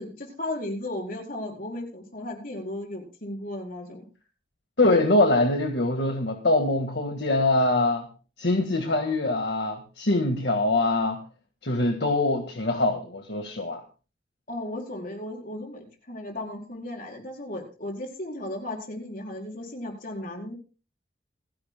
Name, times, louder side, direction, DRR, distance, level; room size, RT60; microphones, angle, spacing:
voice 1, 0.0-4.1 14.5-20.5, left 1 dB, 50° left, 0 dB, 4.5 m, -35 dB
voice 2, 4.8-8.1 8.4-11.2 11.6-13.8, left 2 dB, 65° left, 4 dB, 1.7 m, -23 dB
28.0 x 10.5 x 2.2 m, 0.34 s
head